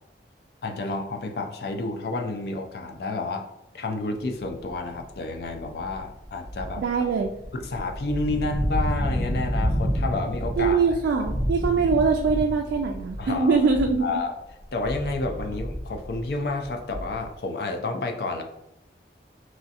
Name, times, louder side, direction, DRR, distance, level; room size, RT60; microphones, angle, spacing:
voice 1, 0.6-3.5 3.7-6.8 7.5-10.8 13.2-13.6 14.0-14.3 14.7-18.4, left 3 dB, 60° left, 4 dB, 0.4 m, -30 dB
sound 1, 4.6-4.9 5.4-14.2 14.5-17.4, equal, 35° left, 1.2 m, -30 dB
voice 2, 6.8-7.3 10.6-14.0, right 5 dB, 85° right, 2 dB, 0.3 m, -22 dB
3.0 x 2.7 x 2.4 m, 0.85 s
head